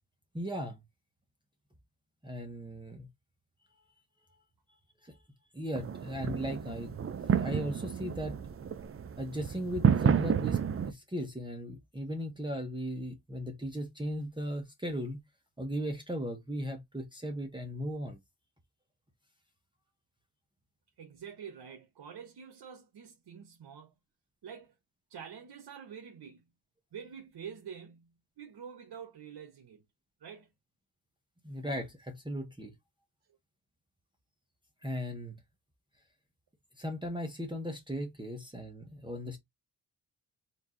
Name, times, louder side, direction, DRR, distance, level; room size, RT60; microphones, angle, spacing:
voice 1, 0.3-0.8 2.2-3.1 5.0-5.2 5.5-7.0 7.3-8.4 9.2-10.6 10.8-15.2 15.6-18.2 31.4-32.7 34.8-35.4 36.8-39.4, equal, 10° right, 0.9 m, -37 dB
sound 1, 5.7-10.9, right 7 dB, 35° right, 0.4 m, -30 dB
voice 2, 21.0-24.0 24.4-24.8 25.1-26.5 26.9-29.9 30.2-30.5, right 7 dB, 75° right, 0.9 m, -47 dB
4.5 x 2.6 x 3.7 m
wide cardioid pair, 90°, 40 cm